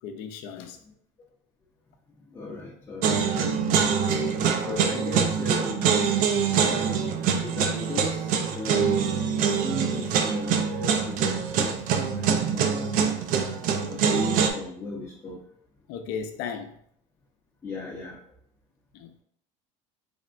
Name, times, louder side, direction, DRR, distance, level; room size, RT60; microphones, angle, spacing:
voice 1, 0.0-0.8 2.6-2.7 4.7-4.9 15.9-16.7 18.9-19.2, left 6 dB, 70° left, 7 dB, 0.5 m, -35 dB
voice 2, 2.3-5.8 6.5-9.2 9.6-13.3 13.9-15.4 17.6-18.2, left 2 dB, 20° left, -3 dB, 0.5 m, -38 dB
sound 1, 3.0-14.5, right 6 dB, 60° right, 0.4 m, -24 dB
3.4 x 2.1 x 2.4 m, 0.67 s
supercardioid pair, 110°, 17 cm